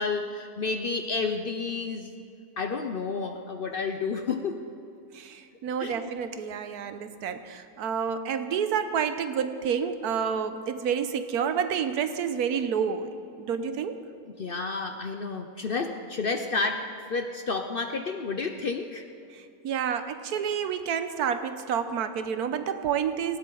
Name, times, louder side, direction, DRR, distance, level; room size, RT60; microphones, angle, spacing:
voice 1, 0.0-2.2 2.6-4.6 5.8-6.1 14.4-19.0, left 4 dB, 50° left, 6 dB, 0.7 m, -30 dB
voice 2, 5.1-13.1 13.4-14.0 19.3-23.4, right 7 dB, 85° right, 10 dB, 1.3 m, -29 dB
18.5 x 16.5 x 3.9 m, 2.6 s
omnidirectional pair, 1.6 m